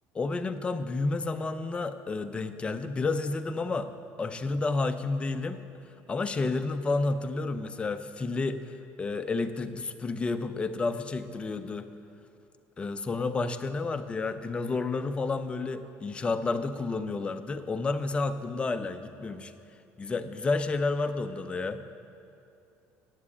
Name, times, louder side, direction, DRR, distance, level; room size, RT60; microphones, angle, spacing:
voice 1, 0.1-3.9 4.2-5.6 6.1-11.9 12.8-19.5 20.0-21.8, left 3 dB, 20° left, 9 dB, 0.5 m, -30 dB
8.3 x 7.4 x 8.4 m, 2.6 s
cardioid pair, 125°, 5 cm